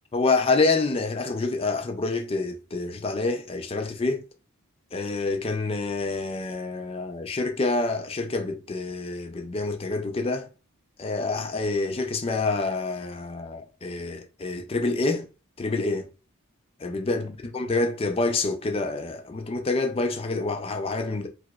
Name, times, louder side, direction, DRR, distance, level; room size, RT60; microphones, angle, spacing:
voice 1, 0.1-4.2 4.9-10.5 11.0-15.3 15.6-16.1 16.8-21.3, left 3 dB, 25° left, 0.4 m, -27 dB
4.7 x 2.0 x 2.3 m
head